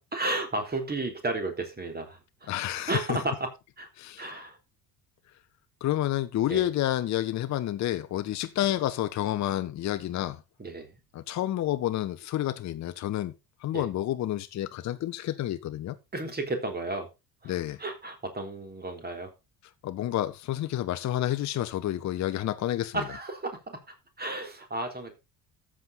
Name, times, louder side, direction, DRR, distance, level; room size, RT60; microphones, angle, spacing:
voice 1, 0.0-2.5 2.9-3.5 3.8-3.9 4.2-4.6 6.5-6.6 10.6-10.9 13.7-13.9 16.1-17.1 17.4-19.3 22.9-23.8 24.2-25.2, right 2 dB, 20° right, 3.5 m, -33 dB
voice 2, 2.5-3.2 4.0-4.3 5.8-10.4 11.1-13.3 13.6-16.0 17.5-17.8 19.8-23.0, left 13 dB, 35° left, 0.9 m, -29 dB
13.5 x 7.5 x 4.2 m
figure-of-eight pair, 55°, 47 cm